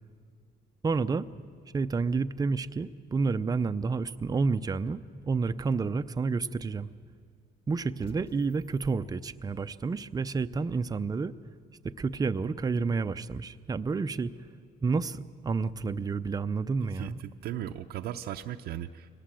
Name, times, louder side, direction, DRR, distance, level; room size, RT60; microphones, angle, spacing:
voice 1, 0.8-1.3 1.7-6.9 7.7-11.3 11.8-14.3 14.8-17.2, right 4 dB, 20° right, 11 dB, 0.6 m, -30 dB
sound 1, 8.0-10.1, equal, 35° left, 1.7 m, -54 dB
voice 2, 16.8-19.1, right 11 dB, 70° right, 4 dB, 0.7 m, -37 dB
23.5 x 18.5 x 7.6 m, 2.2 s
cardioid pair, 110°, 17 cm